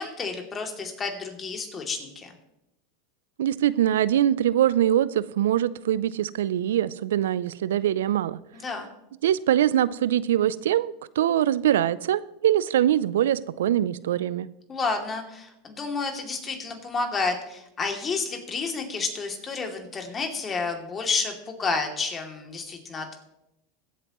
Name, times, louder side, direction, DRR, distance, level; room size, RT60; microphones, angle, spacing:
voice 1, 0.0-2.3 8.5-8.9 14.7-23.2, left 4 dB, 25° left, 3 dB, 2.7 m, -30 dB
voice 2, 3.4-8.4 9.2-14.5, right 11 dB, 80° right, 18 dB, 0.4 m, -23 dB
21.5 x 8.3 x 3.1 m, 0.86 s
hypercardioid pair, 95°, 0 cm